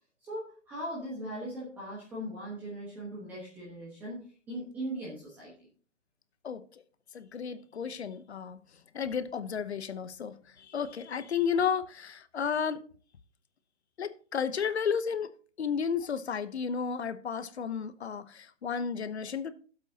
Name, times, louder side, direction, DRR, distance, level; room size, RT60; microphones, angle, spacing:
voice 1, 0.2-5.7, right 1 dB, 5° right, 1.2 m, -39 dB
voice 2, 7.1-8.6 8.9-12.8 14.0-15.3 15.6-19.5, left 7 dB, 60° left, 0.9 m, -32 dB
13.5 x 8.0 x 2.8 m
hypercardioid pair, 170°, 36 cm